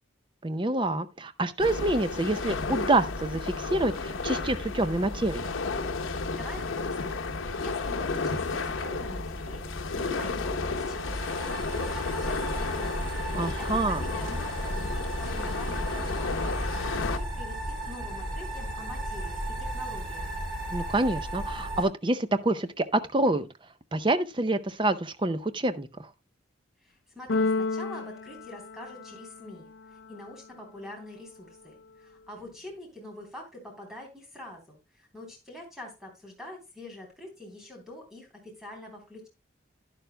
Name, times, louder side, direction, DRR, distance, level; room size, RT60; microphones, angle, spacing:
voice 1, 0.4-5.5 13.3-14.0 20.7-23.5 23.9-26.1, right 2 dB, 25° right, 0.6 m, -27 dB
sound 1, 1.6-17.2, left 3 dB, 90° left, 0.9 m, -32 dB
voice 2, 6.3-20.4 26.8-39.3, left 1 dB, ahead, 3.5 m, -45 dB
sound 2, 10.7-21.8, right 1 dB, 75° right, 5.8 m, -35 dB
Keyboard (musical), 27.3-29.4, left 3 dB, 65° left, 0.5 m, -30 dB
11.5 x 10.5 x 2.2 m
head